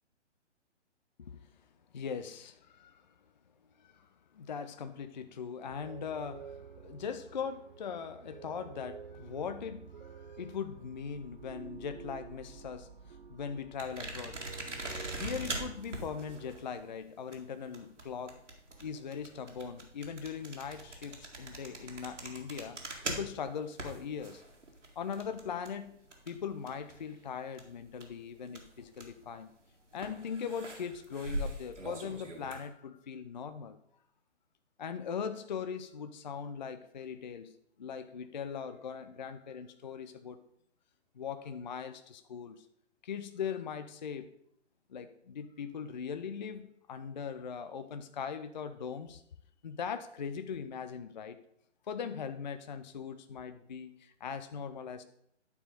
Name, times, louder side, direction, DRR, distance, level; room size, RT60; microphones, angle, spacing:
voice 1, 1.9-3.1 3.8-4.1 4.3-14.5 15.2-18.4 18.8-24.4 25.0-26.0 26.3-29.5 29.9-33.8 34.8-37.5 37.8-40.4 41.2-42.7 43.0-44.3 44.9-49.2 49.6-51.4 51.9-55.0, left 6 dB, 40° left, 11 dB, 0.4 m, -40 dB
sound 1, 5.6-16.6, right 6 dB, 45° right, 0.6 m, -50 dB
sound 2, 13.8-27.2 27.4-29.3 29.9-32.7, right 2 dB, 80° right, 2.0 m, -42 dB
10.5 x 4.7 x 5.2 m, 0.72 s
figure-of-eight pair, 135°, 36 cm